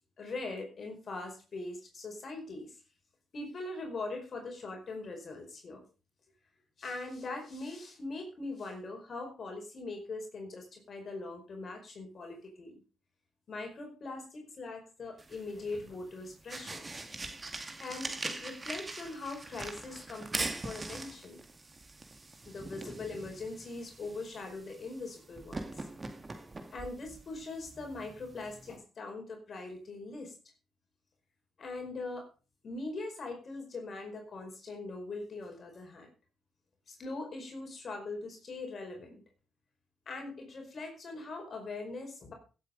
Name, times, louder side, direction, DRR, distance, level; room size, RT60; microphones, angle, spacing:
voice 1, 0.2-2.8 3.3-5.8 6.8-12.8 13.5-16.8 17.8-21.4 22.5-25.9 26.7-30.3 31.6-32.3 32.6-36.1 36.9-39.2 40.1-42.3, left 3 dB, 45° left, 3 dB, 4.9 m, -41 dB
sound 1, 15.2-28.8, right 2 dB, 25° right, 2.2 m, -42 dB
15.5 x 8.2 x 5.2 m, 0.34 s
cardioid pair, 90°, 0 cm